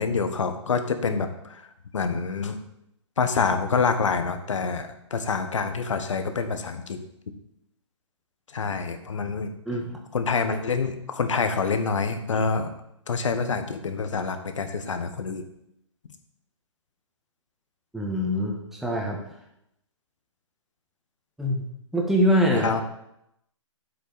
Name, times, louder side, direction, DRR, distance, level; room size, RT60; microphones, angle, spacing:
voice 1, 0.0-1.7 1.9-2.6 3.2-7.0 8.5-9.5 10.1-12.7 13.1-15.4 22.5-22.8, left 5 dB, 75° left, 8 dB, 1.4 m, -26 dB
voice 2, 9.6-10.0 17.9-19.2 21.4-21.6 21.9-22.7, equal, ahead, -1 dB, 1.5 m, -24 dB
9.6 x 7.7 x 4.2 m, 0.80 s
hypercardioid pair, 145°, 16 cm